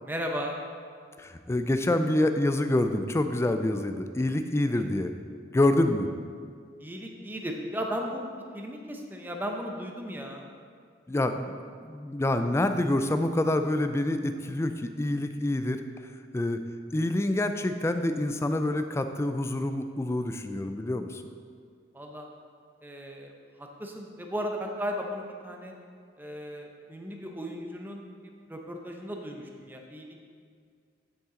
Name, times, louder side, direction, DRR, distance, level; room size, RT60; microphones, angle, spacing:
voice 1, 0.0-0.6 4.7-4.8 6.8-8.2 8.5-10.5 21.9-22.3 22.8-23.3 23.6-25.8 26.2-30.2, equal, 10° right, 2 dB, 0.6 m, -36 dB
voice 2, 1.2-5.1 5.5-6.1 11.1-15.8 16.3-16.6 16.9-21.2, left 1 dB, 15° left, 8 dB, 0.3 m, -27 dB
9.2 x 5.7 x 3.7 m, 2.1 s
head